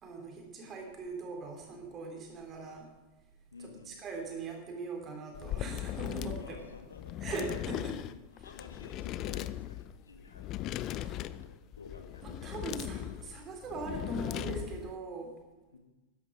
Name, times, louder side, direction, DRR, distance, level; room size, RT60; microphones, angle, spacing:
voice 1, 0.0-2.9 3.6-6.6 7.2-8.0 10.9-11.2 12.2-15.3, right 3 dB, 30° right, 2 dB, 3.5 m, -41 dB
voice 2, 3.5-4.0 6.4-7.2 8.3-10.7 11.0-12.4 15.7-15.8, left 4 dB, 75° left, 4 dB, 1.9 m, -52 dB
sound 1, 5.3-14.9, left 13 dB, 35° left, 0.5 m, -39 dB
12.5 x 11.0 x 6.4 m, 1.1 s
figure-of-eight pair, 90°, 0 cm